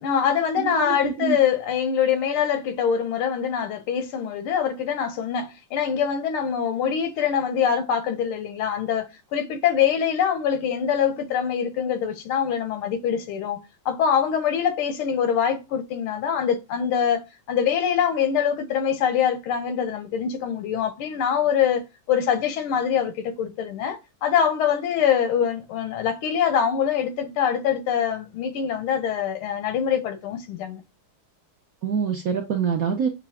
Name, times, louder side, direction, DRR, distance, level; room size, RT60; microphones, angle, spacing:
voice 1, 0.0-13.6 13.9-30.8, left 8 dB, 90° left, 1.8 m, -24 dB
voice 2, 0.6-1.4 31.8-33.1, right 7 dB, 60° right, 1.0 m, -25 dB
6.7 x 3.1 x 2.3 m
omnidirectional pair, 2.3 m